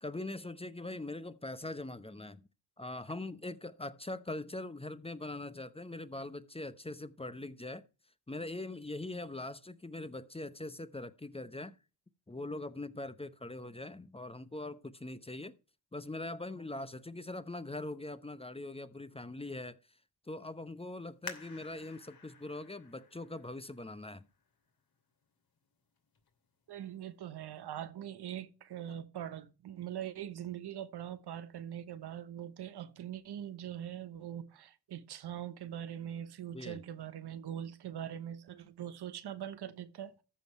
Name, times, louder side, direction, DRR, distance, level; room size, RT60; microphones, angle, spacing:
voice 1, 0.0-2.4 2.8-7.8 8.3-11.8 12.3-15.6 15.9-19.8 20.3-24.3 36.5-36.8, left 2 dB, 15° left, 1.0 m, -42 dB
sound 1, 21.2-24.6 25.2-25.3 26.0-26.3 26.7-26.8, left 5 dB, 60° left, 2.7 m, -51 dB
voice 2, 26.7-40.2, right 10 dB, 70° right, 1.2 m, -42 dB
14.0 x 5.3 x 4.4 m
supercardioid pair, 50°, 41 cm